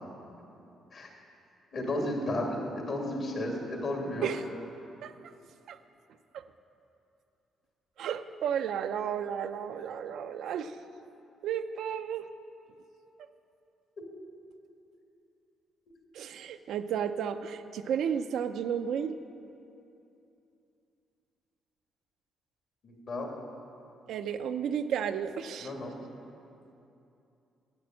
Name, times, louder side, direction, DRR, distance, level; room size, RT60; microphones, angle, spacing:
voice 1, 1.7-4.3 22.8-23.3 25.6-26.0, left 1 dB, 55° left, 0 dB, 2.6 m, -33 dB
voice 2, 8.0-10.8 11.4-12.3 16.1-19.2 24.1-25.7, right 8 dB, 75° right, 8 dB, 0.5 m, -33 dB
10.5 x 8.3 x 7.6 m, 2.8 s
cardioid pair, 90°, 0 cm